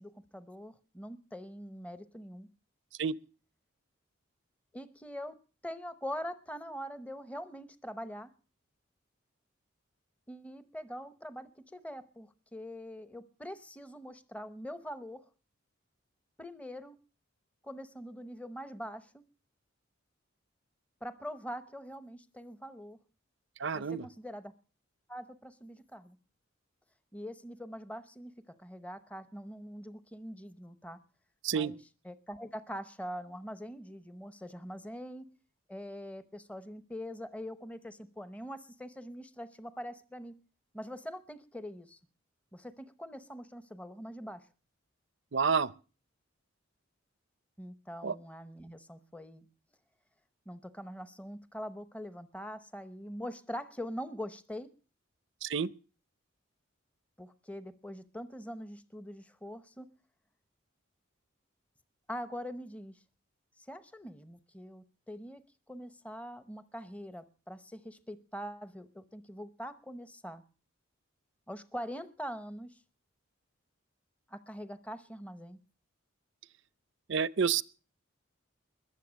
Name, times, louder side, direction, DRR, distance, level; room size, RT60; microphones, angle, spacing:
voice 1, 0.0-2.5 4.7-5.4 5.6-8.3 10.3-15.3 16.4-17.0 17.6-19.2 21.0-23.0 23.7-24.5 25.1-26.2 27.1-31.0 31.5-31.8 32.0-35.3 35.7-40.3 40.7-42.0 42.5-44.5 47.6-49.4 50.5-54.7 57.2-59.9 62.1-63.0 63.6-70.4 71.5-72.8 74.3-75.6, equal, 5° left, 0.8 m, -43 dB
voice 2, 23.6-24.0 31.4-31.7 45.3-45.7 48.0-48.1 55.4-55.7 77.1-77.6, right 6 dB, 60° right, 0.6 m, -29 dB
21.5 x 7.6 x 6.3 m
head